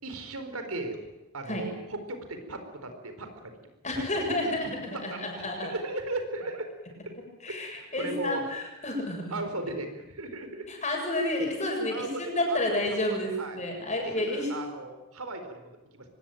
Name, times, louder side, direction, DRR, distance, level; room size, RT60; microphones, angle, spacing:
voice 1, 0.0-1.0 1.3-3.5 4.0-4.1 4.9-6.7 7.5-8.4 9.3-10.7 11.9-12.8 13.1-13.6 14.1-16.0, right 2 dB, 80° right, 7 dB, 4.4 m, -37 dB
voice 2, 3.8-5.7 7.4-9.4 10.7-14.5, left 1 dB, 35° left, 2 dB, 7.4 m, -30 dB
24.5 x 20.0 x 9.3 m, 1.0 s
head